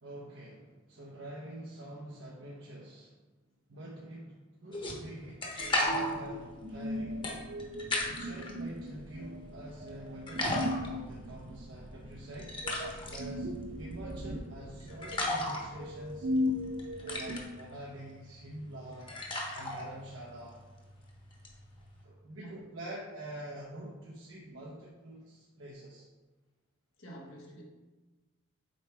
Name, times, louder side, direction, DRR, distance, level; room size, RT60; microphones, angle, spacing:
voice 1, 0.0-3.1 3.7-5.4 5.8-7.3 8.0-12.6 13.0-13.5 13.8-16.3 17.0-19.1 19.5-20.6 22.0-26.1, right 1 dB, 80° right, -4 dB, 0.9 m, -46 dB
sound 1, 4.7-8.5 9.0-9.9 10.3-22.0, left 1 dB, 25° left, 1.0 m, -37 dB
sound 2, 5.6-17.4, left 1 dB, 45° right, 0.5 m, -38 dB
voice 2, 27.0-27.6, right 1 dB, 90° left, -2 dB, 1.4 m, -48 dB
7.8 x 4.6 x 3.4 m, 1.2 s
head